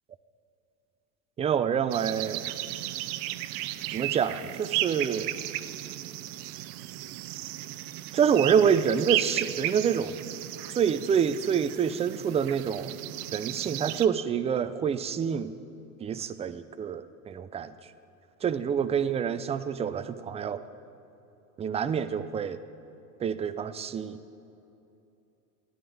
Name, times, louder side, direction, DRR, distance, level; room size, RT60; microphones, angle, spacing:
voice 1, 1.4-2.5 3.9-5.3 8.1-10.1 10.7-12.9 13.3-15.6 16.0-17.7 18.4-20.6 21.6-22.6 23.2-24.2, right 7 dB, 15° right, 12 dB, 0.4 m, -27 dB
sound 1, 1.9-14.1, right 14 dB, 45° right, 0.7 m, -35 dB
14.0 x 11.0 x 8.6 m, 2.8 s
hypercardioid pair, 90°, 49 cm